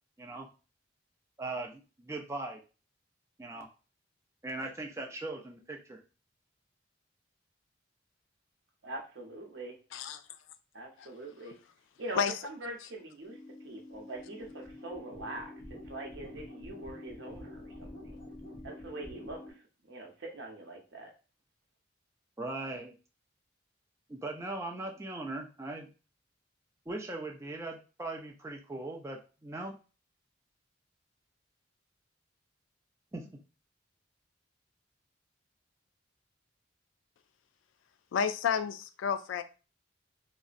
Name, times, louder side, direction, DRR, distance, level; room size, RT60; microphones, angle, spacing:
voice 1, 1.4-2.6 3.4-3.7 4.4-6.0 22.4-23.0 24.1-25.9 26.9-29.8 33.1-33.2, right 2 dB, 15° right, 1 dB, 0.4 m, -39 dB
voice 2, 8.8-9.8 10.7-11.6 12.0-13.4 13.6-18.2 18.6-19.4 19.9-21.1, right 1 dB, 65° right, 1 dB, 0.8 m, -43 dB
sound 1, 13.2-19.5, left 1 dB, 55° left, 1.3 m, -47 dB
voice 3, 38.1-39.4, left 7 dB, 80° left, 11 dB, 0.3 m, -30 dB
3.6 x 2.1 x 2.4 m, 0.34 s
head